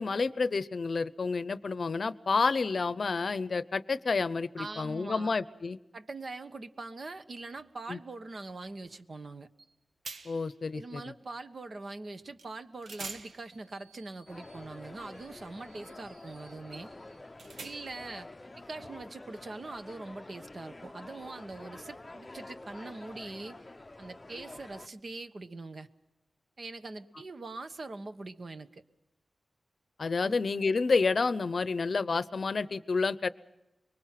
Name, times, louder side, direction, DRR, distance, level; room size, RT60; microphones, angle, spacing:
voice 1, 0.0-5.8 7.9-8.0 10.2-11.0 30.0-33.3, left 4 dB, 55° left, 16 dB, 0.7 m, -29 dB
voice 2, 4.6-5.3 5.9-9.5 10.7-16.9 17.6-18.3 18.6-23.6 24.0-25.9 26.6-28.8 30.2-30.4, right 3 dB, 50° right, 9 dB, 1.2 m, -43 dB
sound 1, 9.6-9.7 10.0-10.6 12.4-12.5 12.8-18.1, right 4 dB, 80° right, 1.4 m, -48 dB
sound 2, 14.3-24.9, left 2 dB, 20° left, 0.7 m, -48 dB
25.0 x 23.5 x 5.9 m, 0.98 s
wide cardioid pair, 120°, 0 cm